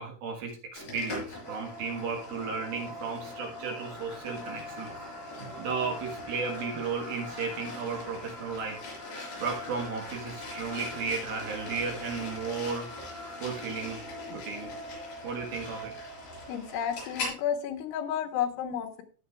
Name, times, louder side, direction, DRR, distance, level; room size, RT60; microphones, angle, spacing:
voice 1, 0.0-4.9 5.3-8.8 9.4-12.9 13.4-14.0 14.3-14.7 15.2-15.9, right 5 dB, 60° right, 1 dB, 3.0 m, -34 dB
sound 1, 0.8-17.4, left 2 dB, 50° left, 6.8 m, -40 dB
voice 2, 16.5-19.0, left 9 dB, 85° left, 5 dB, 3.6 m, -32 dB
19.5 x 6.8 x 2.4 m, 0.40 s
omnidirectional pair, 5.3 m